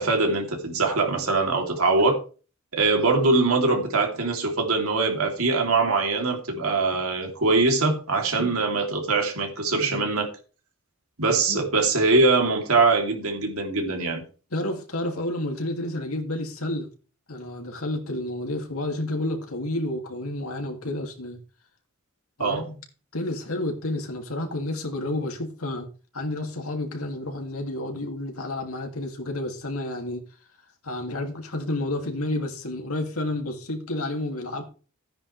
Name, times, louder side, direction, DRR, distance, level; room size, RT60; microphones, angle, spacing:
voice 1, 0.0-2.2 2.7-10.3 11.2-14.2 22.4-22.7, right 3 dB, 85° right, 3.2 m, -22 dB
voice 2, 14.5-16.9 17.3-21.4 22.4-22.8 23.1-25.9 26.1-30.2 30.8-34.6, left 1 dB, 85° left, 2.7 m, -30 dB
14.0 x 9.8 x 3.4 m
head